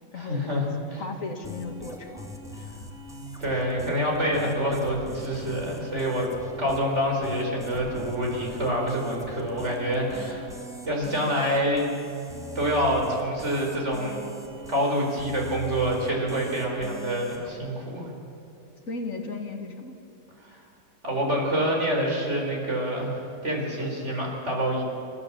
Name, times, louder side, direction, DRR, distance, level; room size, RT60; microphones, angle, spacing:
voice 1, 0.1-1.0 2.6-2.7 3.4-6.3 6.6-10.5 10.8-11.9 12.5-14.2 14.7-18.1 20.4-20.6 21.0-24.8, equal, 40° right, -1 dB, 4.6 m, -27 dB
voice 2, 1.0-2.3 18.9-19.9, left 3 dB, 45° left, 5 dB, 2.1 m, -35 dB
sound 1, 1.4-17.5, equal, ahead, 2.1 m, -41 dB
28.0 x 14.0 x 7.4 m, 2.7 s
omnidirectional pair, 2.0 m